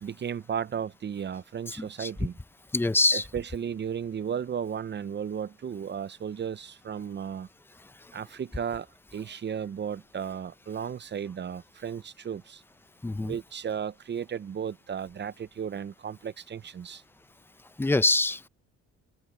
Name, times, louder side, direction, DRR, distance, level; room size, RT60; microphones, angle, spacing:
voice 1, 0.0-2.4 3.1-7.5 8.1-8.9 9.1-12.6 13.2-17.0, right 8 dB, 35° right, 0.6 m, -34 dB
voice 2, 1.7-2.1 2.7-3.2 13.0-13.4 17.8-18.4, left 2 dB, 5° left, 0.6 m, -25 dB
cardioid pair, 90°, 30 cm